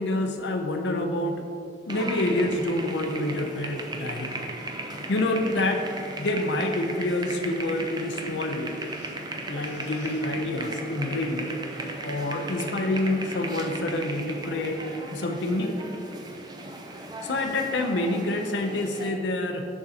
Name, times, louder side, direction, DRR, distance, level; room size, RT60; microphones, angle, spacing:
voice 1, 0.0-1.4 1.9-4.5 5.1-5.8 6.2-9.1 9.5-11.4 12.0-14.8 15.1-15.8 17.2-19.7, left 1 dB, 65° left, 4 dB, 0.6 m, -27 dB
sound 1, 1.9-19.1, right 2 dB, 25° right, 0.5 m, -36 dB
6.4 x 6.0 x 2.8 m, 2.6 s
head